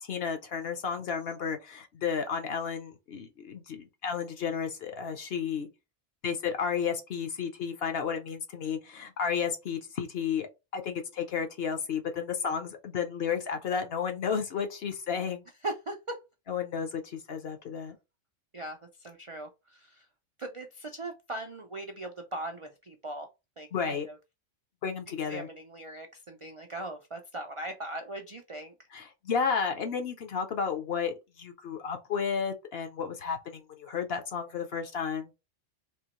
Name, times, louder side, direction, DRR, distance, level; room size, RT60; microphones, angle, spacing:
voice 1, 0.1-5.7 6.2-10.5 10.7-15.4 16.5-18.0 23.7-24.1 24.8-25.5 28.9-35.3, left 6 dB, 55° left, 0.9 m, -32 dB
voice 2, 15.6-16.2 18.5-20.0 20.4-23.3 23.6-24.1 25.3-28.7, right 2 dB, 55° right, 0.3 m, -39 dB
3.7 x 2.9 x 3.0 m
omnidirectional pair, 1.3 m